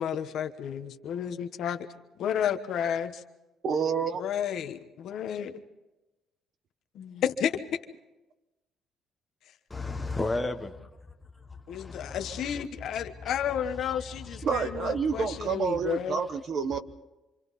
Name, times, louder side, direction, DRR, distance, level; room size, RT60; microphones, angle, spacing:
voice 1, 0.0-1.9 2.2-3.2 4.2-5.6 6.9-7.5 11.7-16.2, left 9 dB, 55° left, 1.2 m, -32 dB
voice 2, 3.6-4.2 14.4-16.8, right 6 dB, 40° right, 1.1 m, -28 dB
voice 3, 9.7-12.6 13.6-15.8 16.7-16.8, left 2 dB, 10° left, 1.2 m, -37 dB
27.5 x 26.0 x 4.2 m
cardioid pair, 170°, 0 cm